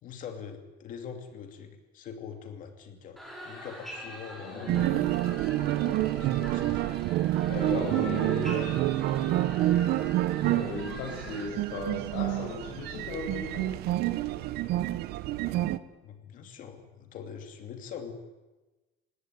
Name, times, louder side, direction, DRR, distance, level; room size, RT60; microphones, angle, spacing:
voice 1, 0.0-6.9 7.4-8.7 15.5-15.7 16.0-18.1, left 7 dB, 45° left, 6 dB, 2.7 m, -43 dB
sound 1, 3.2-11.4, equal, ahead, 4.9 m, -44 dB
voice 2, 4.4-5.1 7.5-8.5 10.4-13.7, left 3 dB, 85° left, -1 dB, 6.5 m, -37 dB
sound 2, 4.7-15.8, right 15 dB, 55° right, 0.9 m, -28 dB
20.5 x 18.0 x 9.3 m, 1.1 s
cardioid pair, 170°, 20 cm